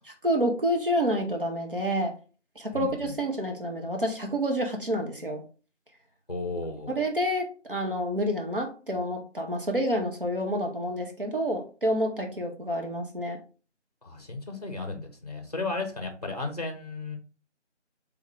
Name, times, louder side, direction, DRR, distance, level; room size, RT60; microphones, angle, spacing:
voice 1, 0.2-2.1 2.6-5.4 6.9-13.4, equal, 50° right, 2 dB, 0.7 m, -28 dB
voice 2, 2.7-3.1 6.3-6.9 14.0-17.2, left 3 dB, 35° left, 5 dB, 0.7 m, -34 dB
3.6 x 3.5 x 3.2 m, 0.37 s
figure-of-eight pair, 170°, 36 cm